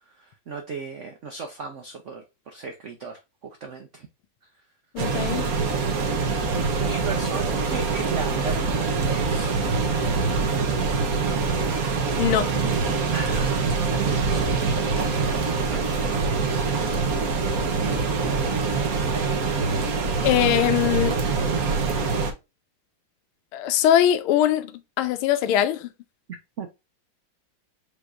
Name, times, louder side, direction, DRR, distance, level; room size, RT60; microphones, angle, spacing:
voice 1, 0.1-4.1 6.8-9.6 13.1-15.9 26.3-26.7, right 5 dB, 90° right, 0.6 m, -37 dB
voice 2, 4.9-5.4 12.2-12.5 20.2-21.2 23.5-24.7 25.0-25.9, left 11 dB, 85° left, 1.4 m, -21 dB
sound 1, 5.0-22.3, right 4 dB, 55° right, 1.2 m, -24 dB
5.2 x 3.4 x 2.4 m
omnidirectional pair, 2.3 m